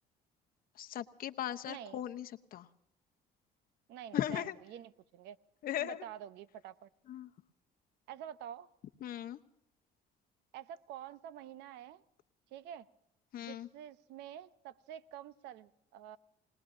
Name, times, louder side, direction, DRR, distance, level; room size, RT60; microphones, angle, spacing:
voice 1, 0.8-2.7 4.1-4.6 5.6-6.0 7.1-7.3 9.0-9.4 13.3-13.7, left 12 dB, 60° left, 8 dB, 0.8 m, -38 dB
voice 2, 1.7-2.0 3.9-4.4 4.7-5.4 5.8-6.9 8.1-8.7 10.5-12.0 12.5-12.9 13.4-16.2, right 10 dB, 90° right, 14 dB, 0.8 m, -48 dB
28.0 x 19.5 x 2.6 m, 0.81 s
cardioid pair, 110°, 17 cm